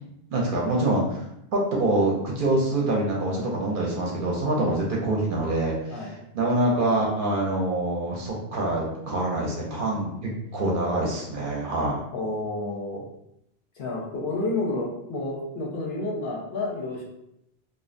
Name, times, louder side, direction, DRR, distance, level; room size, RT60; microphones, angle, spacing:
voice 1, 0.3-1.2 1.5-6.0 6.3-12.0, right 2 dB, 60° right, -3 dB, 0.6 m, -25 dB
voice 2, 12.1-13.0 13.8-17.0, left 2 dB, 60° left, -4 dB, 0.6 m, -30 dB
2.5 x 2.0 x 2.5 m, 0.80 s
omnidirectional pair, 1.1 m